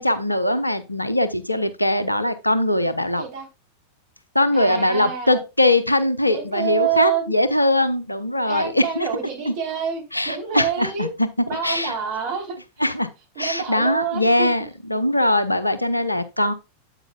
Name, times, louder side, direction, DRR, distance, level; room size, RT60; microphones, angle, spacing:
voice 1, 0.0-3.2 4.3-9.1 9.5-9.6 10.1-11.3 11.6-11.9 12.8-13.1 13.4-16.5, left 1 dB, 85° left, 0.7 m, -21 dB
voice 2, 4.5-5.4 6.3-7.3 8.4-11.1 11.5-12.6 13.4-14.5 15.2-15.3, right 8 dB, 45° right, 3.6 m, -27 dB
8.9 x 8.3 x 2.3 m
figure-of-eight pair, 90°, 0 cm